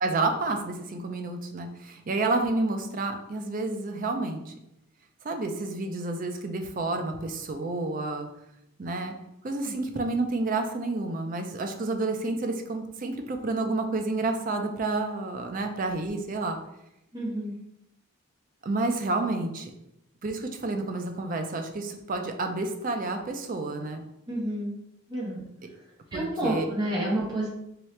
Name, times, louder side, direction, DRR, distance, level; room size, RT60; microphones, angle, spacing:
voice 1, 0.0-4.5 5.2-8.3 8.8-9.1 9.4-16.6 18.6-19.7 20.2-24.0 26.1-26.7, right 2 dB, 40° right, 5 dB, 0.4 m, -30 dB
voice 2, 17.1-17.5 24.3-24.7 25.1-25.4 26.1-27.5, right 1 dB, 20° right, -6 dB, 1.2 m, -29 dB
3.6 x 2.9 x 3.2 m, 0.84 s
head